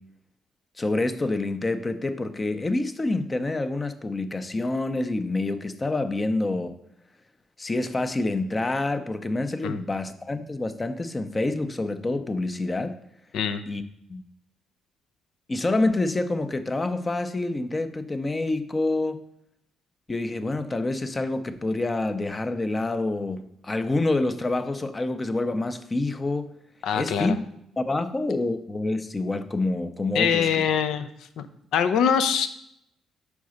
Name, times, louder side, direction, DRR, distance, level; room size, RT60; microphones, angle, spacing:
voice 1, 0.8-6.7 7.6-12.9 13.7-13.8 14.1-14.2 15.5-19.2 20.1-26.5 26.9-27.5 27.8-30.5, left 2 dB, 25° left, 10 dB, 0.6 m, -27 dB
voice 2, 26.8-27.4 30.1-31.1 31.4-31.5 31.7-32.5, left 7 dB, 80° left, 10 dB, 0.6 m, -23 dB
5.3 x 4.8 x 6.3 m, 0.75 s
cardioid pair, 90°, 0 cm